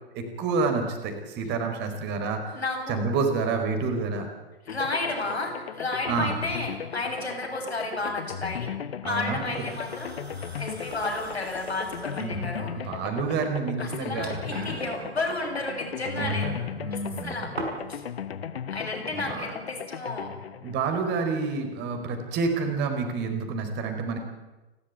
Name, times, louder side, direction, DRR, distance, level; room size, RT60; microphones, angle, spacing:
voice 1, 0.1-2.6 2.9-4.3 6.1-6.4 9.0-9.6 12.1-12.5 12.8-14.8 16.2-17.5 19.1-19.4 20.6-24.2, right 4 dB, 35° right, 5 dB, 4.7 m, -29 dB
voice 2, 2.5-3.0 4.6-8.7 9.0-10.2 10.6-13.0 13.8-16.5 16.9-17.5 17.9-18.0 18.7-20.3, left 2 dB, 80° left, 1 dB, 8.0 m, -32 dB
sound 1, 4.7-21.6, left 8 dB, 65° left, 1.3 m, -37 dB
sound 2, 9.4-18.0, right 2 dB, 80° right, 5.9 m, -43 dB
29.5 x 13.0 x 9.5 m, 1.1 s
figure-of-eight pair, 105°, 32 cm